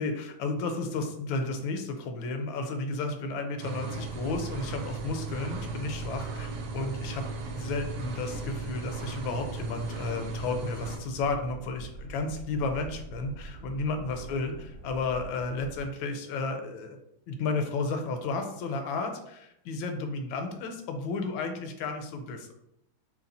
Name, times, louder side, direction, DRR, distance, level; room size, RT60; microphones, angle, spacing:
voice 1, 0.0-7.3 7.5-17.0 17.3-22.5, left 3 dB, 80° left, 6 dB, 1.4 m, -33 dB
sound 1, 3.6-11.0, right 4 dB, 70° right, 0.9 m, -37 dB
sound 2, 3.9-15.9, right 2 dB, 55° right, 1.2 m, -45 dB
3.2 x 3.1 x 4.0 m, 0.79 s
omnidirectional pair, 2.2 m